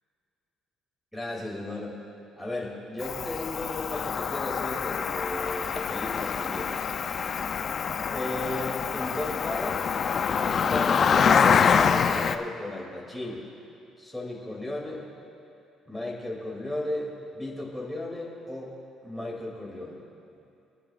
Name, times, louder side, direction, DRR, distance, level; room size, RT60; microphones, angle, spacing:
voice 1, 1.1-2.0 2.4-6.7 8.1-9.9 10.2-13.4 14.0-15.1 15.9-18.7 19.0-20.0, left 1 dB, ahead, -4 dB, 2.7 m, -35 dB
Cricket, 3.0-12.4, left 6 dB, 45° left, 0.5 m, -25 dB
25.5 x 10.0 x 2.5 m, 2.7 s
cardioid pair, 120°, 0 cm